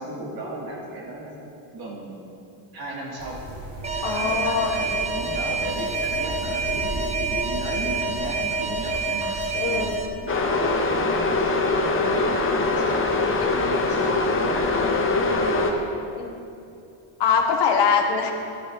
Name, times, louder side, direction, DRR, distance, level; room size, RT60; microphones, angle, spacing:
voice 1, 0.0-1.3 1.7-2.2 2.7-3.4 3.9-9.9 10.2-11.5 11.8-15.6, right 2 dB, 50° right, -3 dB, 2.7 m, -35 dB
sound 1, 3.2-10.0, equal, 80° right, 2.7 m, -36 dB
Alarm, 3.8-10.1, right 3 dB, 15° right, 0.5 m, -27 dB
voice 2, 4.0-4.7 9.5-9.9 16.2-16.3 17.2-18.3, left 6 dB, 55° left, 2 dB, 1.5 m, -22 dB
sound 2, 10.3-15.7, left 3 dB, 25° left, 0.9 m, -22 dB
13.0 x 12.0 x 4.0 m, 2.7 s
cardioid pair, 175°, 48 cm